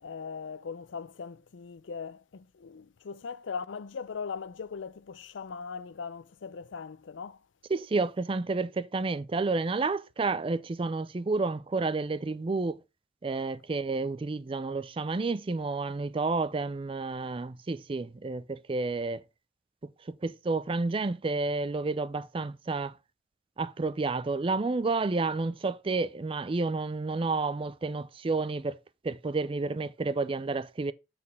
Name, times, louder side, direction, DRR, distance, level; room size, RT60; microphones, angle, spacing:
voice 1, 0.0-7.4, left 5 dB, 75° left, 0.5 m, -39 dB
voice 2, 7.7-12.8 13.2-19.2 20.2-22.9 23.6-28.8 29.0-30.9, right 3 dB, 30° right, 0.4 m, -30 dB
7.5 x 4.2 x 5.4 m
head